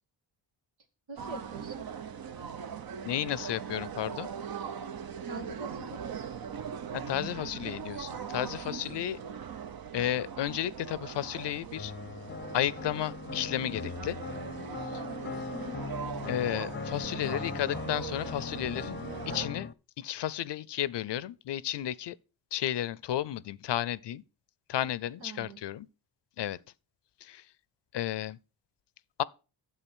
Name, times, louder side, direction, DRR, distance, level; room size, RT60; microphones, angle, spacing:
voice 1, 1.1-1.9 5.2-6.0 8.7-8.9 15.5-15.9 25.2-25.6, right 1 dB, 85° right, 2.3 m, -44 dB
sound 1, 1.2-19.5, right 7 dB, 50° right, 0.8 m, -40 dB
voice 2, 3.0-4.3 6.9-9.2 9.9-11.9 12.5-14.2 14.8-15.0 16.3-19.0 19.3-19.7 20.0-22.2 22.5-24.2 24.7-25.9 26.4-26.6 27.2-27.5 27.9-28.4 29.2-29.3, left 12 dB, 65° left, 0.6 m, -33 dB
sound 2, 11.8-19.7, left 5 dB, 25° left, 0.7 m, -39 dB
9.1 x 7.7 x 6.2 m
cardioid pair, 70°, 46 cm